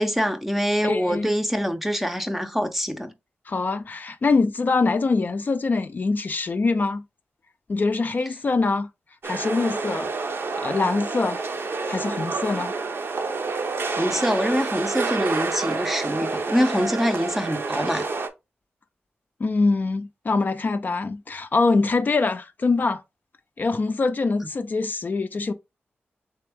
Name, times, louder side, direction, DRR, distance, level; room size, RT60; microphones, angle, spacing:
voice 1, 0.0-3.1 14.0-18.1, equal, 5° right, 0.6 m, -24 dB
voice 2, 0.8-1.3 3.5-7.0 7.7-8.9 9.2-10.1 10.6-11.5 11.9-12.7 19.4-23.0 23.6-25.5, left 3 dB, 45° left, 0.4 m, -24 dB
sound 1, 9.2-18.3, right 4 dB, 60° right, 0.7 m, -28 dB
3.4 x 3.3 x 3.4 m
wide cardioid pair, 95°, 4 cm